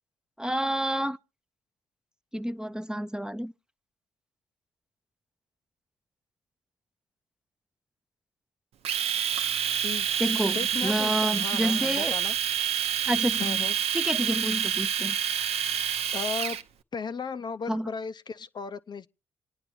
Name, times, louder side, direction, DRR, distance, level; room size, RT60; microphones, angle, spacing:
voice 1, 0.4-1.2 2.3-3.5 10.2-12.1 13.1-13.6 13.9-15.2 17.7-17.9, equal, 5° right, 0.6 m, -29 dB
Domestic sounds home sounds, 8.8-16.6, right 9 dB, 65° right, 0.8 m, -28 dB
voice 2, 10.5-12.3 13.4-13.7 16.1-16.6 16.9-19.1, left 5 dB, 40° left, 0.6 m, -35 dB
26.5 x 9.7 x 3.1 m
hypercardioid pair, 45°, 11 cm